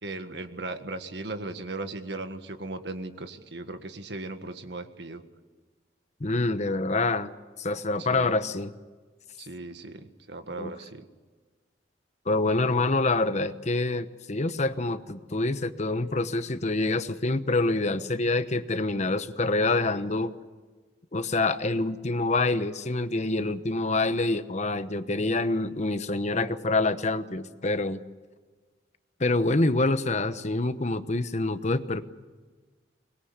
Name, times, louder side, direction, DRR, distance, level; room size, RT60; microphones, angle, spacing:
voice 1, 0.0-5.2 8.0-8.3 9.4-11.1, right 2 dB, 70° right, 8 dB, 1.8 m, -37 dB
voice 2, 6.2-7.3 7.6-8.7 10.5-10.7 12.3-20.3 21.1-28.0 29.2-32.0, left 2 dB, 40° left, 11 dB, 1.1 m, -26 dB
24.0 x 21.0 x 8.1 m, 1.4 s
head